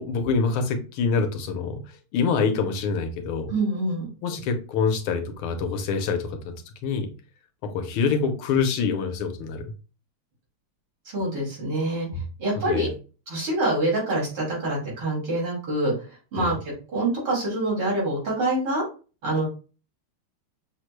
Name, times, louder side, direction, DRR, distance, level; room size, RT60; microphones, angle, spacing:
voice 1, 0.0-1.8 2.1-3.5 4.2-6.4 6.8-7.1 7.6-9.7 12.1-12.2 12.7-12.9 16.4-16.5, left 5 dB, 90° left, 5 dB, 1.6 m, -25 dB
voice 2, 3.5-4.1 11.1-12.1 12.4-12.9 13.3-15.9 16.3-18.8 19.2-19.4, right 1 dB, 90° right, -5 dB, 3.5 m, -25 dB
6.4 x 2.1 x 3.1 m, 0.35 s
omnidirectional pair, 2.3 m